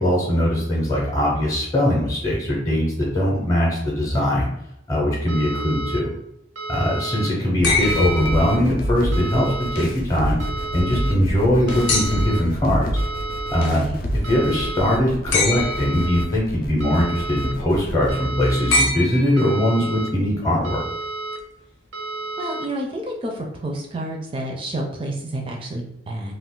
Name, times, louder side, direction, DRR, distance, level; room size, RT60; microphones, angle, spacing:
voice 1, 0.0-4.5 4.9-6.1 6.7-10.4 10.7-12.9 13.5-13.8 14.3-20.8, left 1 dB, 20° left, -3 dB, 0.7 m, -21 dB
sound 1, 5.3-6.0 6.6-7.3 7.8-8.6 9.1-9.8 10.4-11.1 11.7-12.4 13.0-13.7 14.2-15.0 15.5-16.2 16.8-17.5 18.1-18.8 19.4-20.1 20.6-21.4 21.9-22.7, right 3 dB, 90° right, 0.6 m, -31 dB
sound 2, 7.6-9.0 11.9-12.5 15.3-16.1 18.7-19.7 21.3-21.4, left 2 dB, 75° left, 0.7 m, -24 dB
sound 3, 7.6-18.1, equal, 50° left, 0.4 m, -28 dB
voice 2, 13.6-14.0 22.4-26.3, right 1 dB, 25° right, 1 dB, 0.4 m, -29 dB
2.4 x 2.3 x 3.6 m, 0.78 s
head